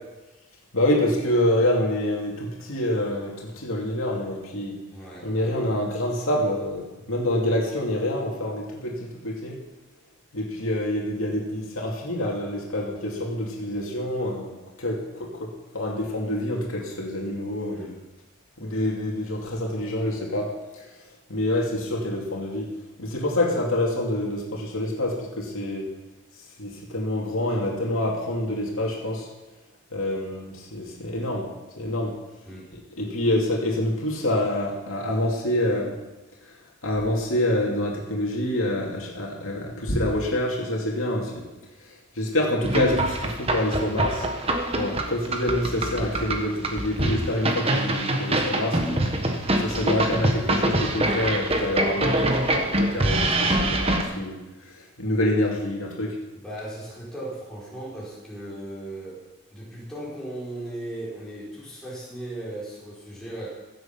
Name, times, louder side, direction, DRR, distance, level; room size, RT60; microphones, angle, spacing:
voice 1, 0.7-4.7 5.2-9.6 10.3-15.5 15.7-17.9 18.6-20.8 21.3-22.7 23.0-25.9 26.6-29.3 29.9-31.5 31.8-32.2 32.7-36.0 36.8-41.4 42.1-44.3 44.7-49.0 49.6-54.4 54.7-56.2, left 1 dB, 75° left, -2 dB, 2.6 m, -27 dB
voice 2, 4.9-5.8 17.7-18.0 32.4-32.7 56.3-59.2 59.5-63.5, right 1 dB, 5° left, -8 dB, 4.6 m, -37 dB
sound 1, 42.6-54.0, right 1 dB, 25° right, 1.3 m, -25 dB
16.0 x 8.0 x 6.0 m, 1.1 s
head